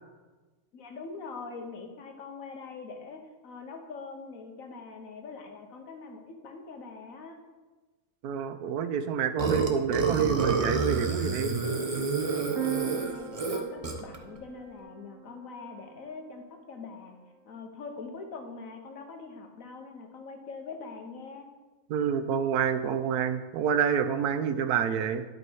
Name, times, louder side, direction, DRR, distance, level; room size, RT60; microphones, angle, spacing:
voice 1, 0.7-7.4 12.4-17.2 17.5-21.5, left 4 dB, 65° left, 4 dB, 1.5 m, -43 dB
voice 2, 8.2-11.5 21.9-25.2, right 7 dB, 90° right, 10 dB, 1.2 m, -28 dB
Burping eructation, 9.4-14.2, right 4 dB, 30° right, 0.7 m, -28 dB
sound 1, 12.6-16.3, right 8 dB, 70° right, 1.1 m, -39 dB
11.0 x 5.4 x 4.7 m, 1.2 s
omnidirectional pair, 1.6 m